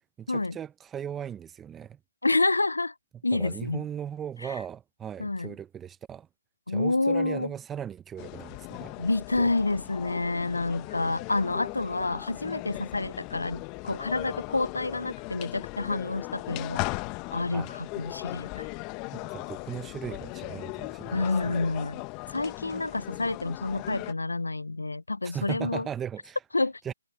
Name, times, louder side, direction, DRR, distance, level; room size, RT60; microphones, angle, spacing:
voice 1, 0.2-2.0 3.3-6.3 6.7-8.9 9.4-9.5 17.5-17.7 19.1-21.7 25.2-26.4 26.8-26.9, right 9 dB, 10° right, 0.8 m, -38 dB
voice 2, 2.2-2.9 3.2-3.8 5.2-5.5 6.7-7.5 9.0-16.8 17.3-18.7 21.1-22.0 22.3-25.9 26.5-26.9, left 2 dB, 90° left, 0.5 m, -28 dB
sound 1, 8.2-24.1, left 26 dB, 20° left, 1.4 m, -38 dB
figure-of-eight pair, 150°, 0 cm